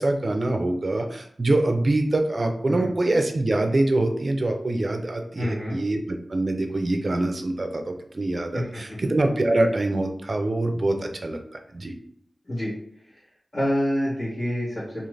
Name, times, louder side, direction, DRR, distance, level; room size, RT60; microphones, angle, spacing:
voice 1, 0.0-11.4 11.7-11.9, right 2 dB, 55° right, 5 dB, 0.4 m, -24 dB
voice 2, 5.4-5.8 8.5-9.0 12.5-12.7 13.5-15.1, equal, 45° left, -12 dB, 1.2 m, -27 dB
2.5 x 2.5 x 3.1 m, 0.66 s
wide cardioid pair, 60°, 0 cm